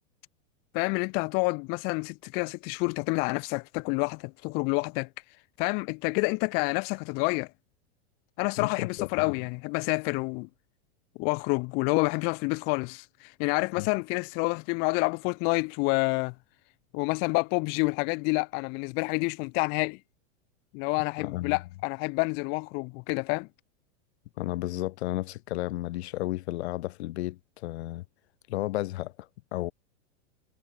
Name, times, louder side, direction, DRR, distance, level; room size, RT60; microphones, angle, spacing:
voice 1, 0.7-5.1 5.6-7.5 8.4-10.5 11.2-16.3 16.9-20.0 20.7-23.5, left 32 dB, 30° left, 0.5 m, -28 dB
voice 2, 8.6-9.3 13.8-13.9 21.2-21.6 24.4-28.0 28.5-29.7, left 17 dB, 65° left, 2.1 m, -33 dB
supercardioid pair, 160°, 35 cm